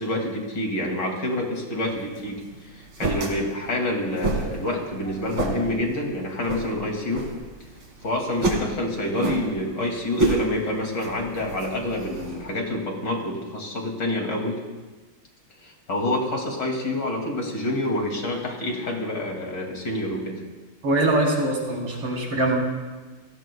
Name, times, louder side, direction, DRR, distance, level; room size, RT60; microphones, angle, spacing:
voice 1, 0.0-7.3 8.0-14.6 15.6-20.4, left 1 dB, 50° left, 1 dB, 3.1 m, -27 dB
sound 1, 1.9-12.6, right 2 dB, 60° right, 3.1 m, -30 dB
voice 2, 20.8-22.6, right 2 dB, 80° right, -2 dB, 4.6 m, -23 dB
29.5 x 18.0 x 2.3 m, 1.3 s
omnidirectional pair, 2.4 m